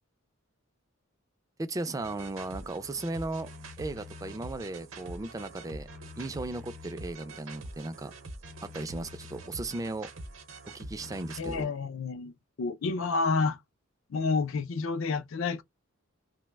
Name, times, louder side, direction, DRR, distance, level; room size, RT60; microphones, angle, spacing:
voice 1, 1.6-3.5 3.8-5.9 6.2-8.1 8.6-10.1 10.6-11.7, right 2 dB, 15° right, 0.3 m, -36 dB
sound 1, 2.0-11.6, right 1 dB, 70° right, 0.7 m, -44 dB
voice 2, 11.4-12.3 12.6-13.6 14.1-15.6, left 4 dB, 70° left, 0.5 m, -29 dB
2.9 x 2.1 x 3.3 m
head